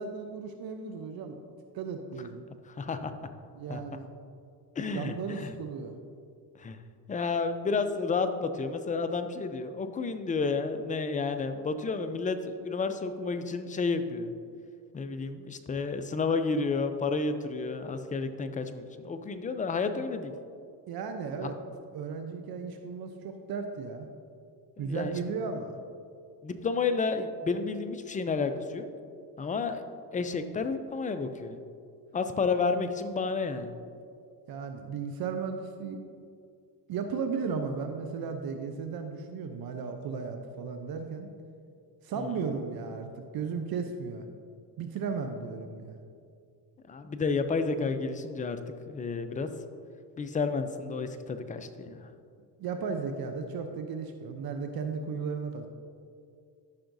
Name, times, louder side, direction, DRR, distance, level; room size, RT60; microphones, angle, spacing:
voice 1, 0.0-1.4 1.7-2.4 3.6-4.1 4.9-5.9 20.9-21.6 21.9-24.1 24.8-25.8 34.5-36.0 36.9-41.3 42.0-43.1 43.3-44.2 44.8-46.0 52.6-55.7, right 5 dB, 50° right, 5 dB, 0.7 m, -35 dB
voice 2, 2.8-3.1 3.7-3.8 4.8-5.5 6.6-6.8 7.1-14.3 14.9-20.3 21.4-21.5 24.8-25.4 26.4-28.9 29.4-29.8 30.1-31.6 32.1-33.7 46.9-48.6 48.9-49.5 50.2-52.0, left 4 dB, 15° left, 9 dB, 0.5 m, -31 dB
13.0 x 5.7 x 2.6 m, 2.3 s
supercardioid pair, 90°, 47 cm